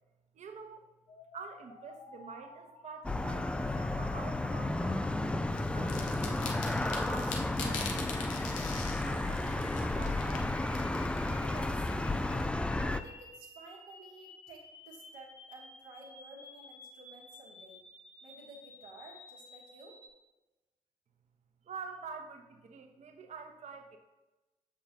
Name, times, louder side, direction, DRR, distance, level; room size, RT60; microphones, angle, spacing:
voice 1, 0.3-0.8 1.3-5.1 5.7-10.5 21.6-24.0, right 5 dB, 45° right, 5 dB, 0.9 m, -48 dB
sound 1, 1.1-20.1, left 2 dB, 45° left, 1.5 m, -53 dB
sound 2, 3.0-13.0, left 2 dB, 5° left, 0.3 m, -32 dB
sound 3, 5.6-12.4, left 5 dB, 80° left, 0.7 m, -44 dB
voice 2, 11.3-12.6 12.8-17.8 18.2-20.0, right 2 dB, 70° right, -3 dB, 1.2 m, -52 dB
6.8 x 5.5 x 2.8 m, 1.1 s
hypercardioid pair, 45°, 16 cm